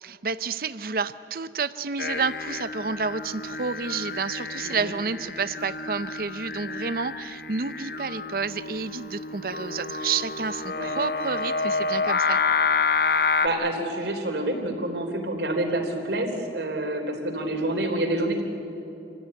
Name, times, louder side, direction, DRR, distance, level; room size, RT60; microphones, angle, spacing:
voice 1, 0.0-12.4, right 5 dB, 55° right, 14 dB, 0.7 m, -30 dB
Singing, 2.0-13.5, left 4 dB, 55° left, 0.8 m, -29 dB
voice 2, 13.4-18.4, right 1 dB, 75° right, 3 dB, 3.9 m, -28 dB
27.5 x 16.0 x 9.9 m, 2.8 s
head